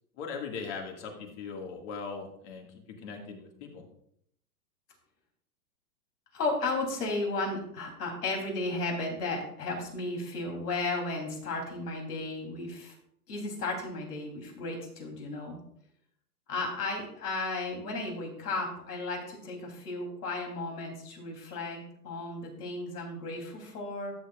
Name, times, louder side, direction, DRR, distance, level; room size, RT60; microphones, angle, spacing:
voice 1, 0.2-3.8, left 5 dB, 50° left, 2 dB, 2.0 m, -40 dB
voice 2, 6.3-12.9 13.3-15.6 16.5-24.1, left 2 dB, 75° left, 2 dB, 3.4 m, -34 dB
13.0 x 7.2 x 2.4 m, 0.70 s
hypercardioid pair, 125°, 47 cm